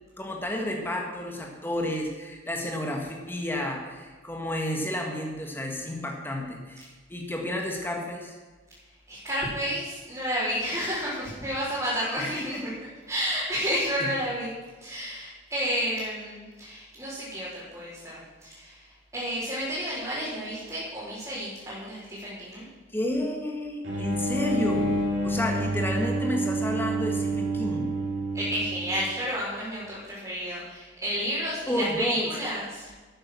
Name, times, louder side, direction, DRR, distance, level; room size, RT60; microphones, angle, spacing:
voice 1, 0.2-8.4 12.2-12.6 14.0-14.1 22.9-24.9 25.2-27.9 31.7-32.3, left 1 dB, 10° left, 1 dB, 1.9 m, -31 dB
voice 2, 9.1-12.7 13.1-22.7 28.3-32.9, equal, 15° right, -12 dB, 4.2 m, -31 dB
sound 1, 23.8-29.2, right 1 dB, 70° right, 3.4 m, -28 dB
12.5 x 8.8 x 6.3 m, 1.3 s
head